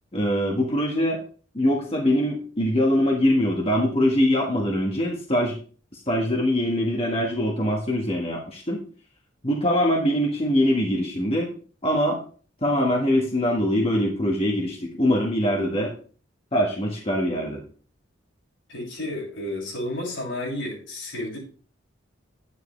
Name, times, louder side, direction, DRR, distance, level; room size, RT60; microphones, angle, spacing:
voice 1, 0.1-1.2 1.5-5.6 5.9-8.8 9.4-11.5 11.8-12.2 12.6-15.9 16.5-17.6, equal, 30° left, -1 dB, 1.6 m, -23 dB
voice 2, 18.7-21.4, left 1 dB, 80° left, -3 dB, 6.5 m, -31 dB
10.5 x 9.7 x 3.3 m, 0.40 s
head